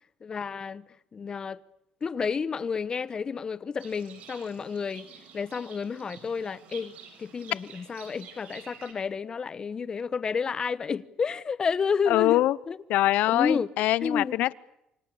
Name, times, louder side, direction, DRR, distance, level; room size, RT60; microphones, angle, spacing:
voice 1, 0.2-0.8 1.1-1.6 2.0-5.1 5.3-6.9 7.2-12.8 13.3-13.7 14.0-14.5, left 5 dB, 30° left, 1.1 m, -30 dB
Livestock farm animals working animals, 3.8-8.9, right 7 dB, 65° right, 7.4 m, -49 dB
voice 2, 12.1-12.5 12.9-14.5, left 15 dB, 75° left, 0.9 m, -23 dB
28.5 x 25.0 x 7.0 m
cardioid pair, 120°, 3 cm